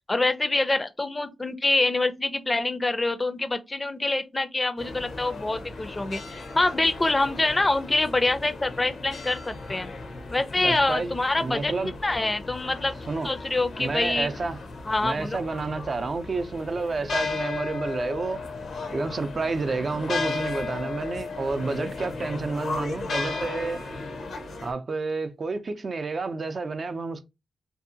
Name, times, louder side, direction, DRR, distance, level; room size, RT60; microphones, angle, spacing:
voice 1, 0.1-9.9 10.3-11.7 12.0-13.0 13.2-14.3 14.9-15.4, left 2 dB, 30° left, 0.4 m, -25 dB
sound 1, 4.8-24.7, left 3 dB, 80° left, 0.6 m, -35 dB
voice 2, 10.6-11.9 13.1-13.3 13.8-14.6 15.0-18.4 18.9-23.8 24.6-27.2, right 3 dB, 55° right, 0.4 m, -30 dB
2.6 x 2.4 x 2.5 m
cardioid pair, 65°, 0 cm